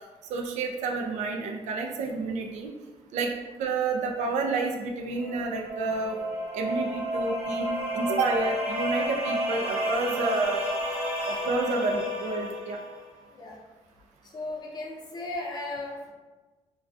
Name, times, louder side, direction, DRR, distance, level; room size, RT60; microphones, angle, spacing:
voice 1, 0.3-2.7 3.1-3.3 3.6-6.2 6.5-10.6 11.3-12.8, right 3 dB, 85° right, 2 dB, 0.4 m, -29 dB
sound 1, 5.2-12.9, equal, 15° right, 1.0 m, -31 dB
voice 2, 14.3-16.1, left 2 dB, 35° left, -1 dB, 0.5 m, -36 dB
2.3 x 2.2 x 2.4 m, 1.2 s
cardioid pair, 155°, 12 cm